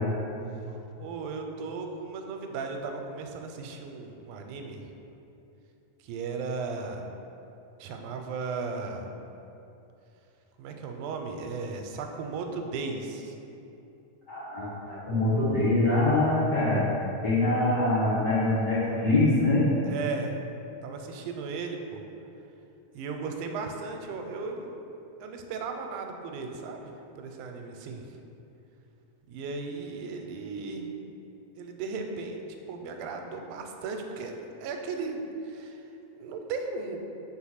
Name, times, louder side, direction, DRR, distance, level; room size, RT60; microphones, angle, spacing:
voice 1, 1.0-4.9 6.0-7.1 7.8-9.1 10.6-13.4 19.9-20.3 20.8-22.0 22.9-24.8 25.2-28.1 29.3-30.9 31.6-35.8 36.2-37.0, right 4 dB, 90° right, 4 dB, 2.1 m, -36 dB
voice 2, 14.3-16.9 17.2-19.7, left 2 dB, 55° left, -11 dB, 1.2 m, -24 dB
4.8 x 4.4 x 5.6 m, 2.8 s
omnidirectional pair, 3.5 m